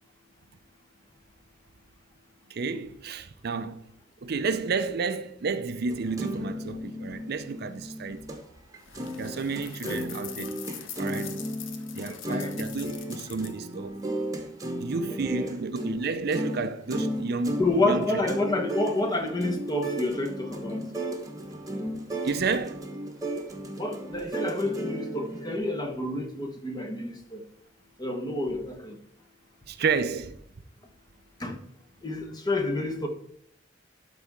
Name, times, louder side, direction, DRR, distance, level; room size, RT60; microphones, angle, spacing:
voice 1, 2.5-3.9 4.2-8.2 9.2-10.5 11.0-11.4 11.9-14.0 14.8-18.0 22.2-22.9 29.7-30.4, right 4 dB, 55° right, 0.5 m, -31 dB
sound 1, 5.9-8.4 8.7-25.6, right 1 dB, 20° right, 1.2 m, -35 dB
sound 2, 8.8-13.7, left 9 dB, 80° left, 0.9 m, -43 dB
voice 2, 12.1-12.5 15.1-15.5 17.6-20.8 21.7-21.9 23.8-27.4 28.0-29.0 31.4-31.6 32.0-33.1, left 2 dB, 20° left, 1.3 m, -29 dB
12.5 x 4.2 x 3.6 m
head